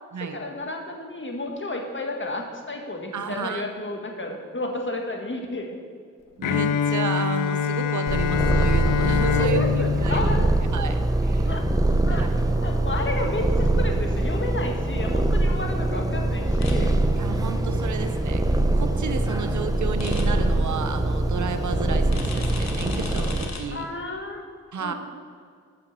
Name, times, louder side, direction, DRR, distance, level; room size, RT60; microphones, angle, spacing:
voice 1, 0.2-5.7 9.2-10.6 11.4-11.6 12.0-12.3 12.6-17.0 23.7-24.4 24.8-24.9, left 2 dB, 35° left, 2 dB, 1.6 m, -31 dB
voice 2, 3.1-3.7 6.4-10.3 10.6-11.5 12.1-12.3 17.1-18.4 18.7-23.9 24.7-24.9, right 6 dB, 65° right, 8 dB, 0.7 m, -32 dB
Bowed string instrument, 6.4-11.3, left 8 dB, 75° left, 0.5 m, -25 dB
Purr, 8.1-23.5, right 2 dB, 10° right, 0.9 m, -23 dB
sound 1, 16.6-16.7 20.0-20.2 22.1-23.6, left 4 dB, 55° left, 1.4 m, -37 dB
6.8 x 5.8 x 6.6 m, 2.1 s
supercardioid pair, 40°, 33 cm